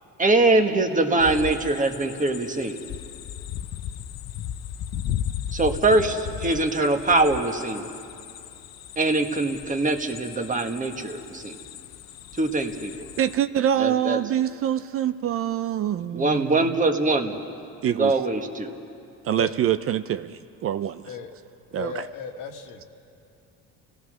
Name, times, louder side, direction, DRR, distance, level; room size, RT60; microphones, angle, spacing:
voice 1, 0.2-2.8 5.5-7.9 9.0-11.6 12.3-12.9 13.8-14.2 16.1-17.3 17.8-18.7, right 2 dB, 25° right, 5 dB, 1.5 m, -23 dB
sound 1, 1.2-13.4, left 10 dB, 50° left, 0.7 m, -36 dB
voice 2, 13.2-16.7 17.8-18.1 19.2-21.1 21.7-22.0, right 10 dB, 40° right, 12 dB, 0.5 m, -25 dB
voice 3, 19.3-19.6 21.1-21.3 21.7-22.8, left 7 dB, 65° left, 4 dB, 1.9 m, -36 dB
29.5 x 17.0 x 6.3 m, 2.6 s
cardioid pair, 105°, 34 cm